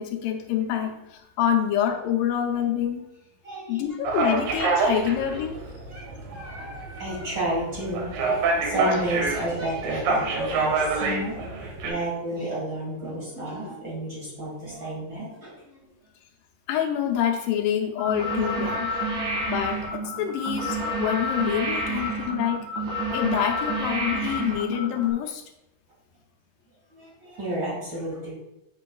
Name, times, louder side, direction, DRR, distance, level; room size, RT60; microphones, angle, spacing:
voice 1, 0.0-3.1 3.7-5.6 16.7-18.9 19.5-22.7 23.1-25.4, left 9 dB, 80° left, 3 dB, 2.3 m, -26 dB
voice 2, 3.4-3.9 4.3-4.4 4.7-5.1 5.9-15.9 19.1-19.2 26.9-28.3, right 1 dB, 40° right, -6 dB, 1.8 m, -32 dB
sound 1, 4.0-11.9, right 3 dB, 85° right, 2.7 m, -27 dB
sound 2, 18.0-25.1, equal, 70° right, 2.8 m, -29 dB
8.0 x 5.2 x 2.3 m, 0.87 s
omnidirectional pair, 3.9 m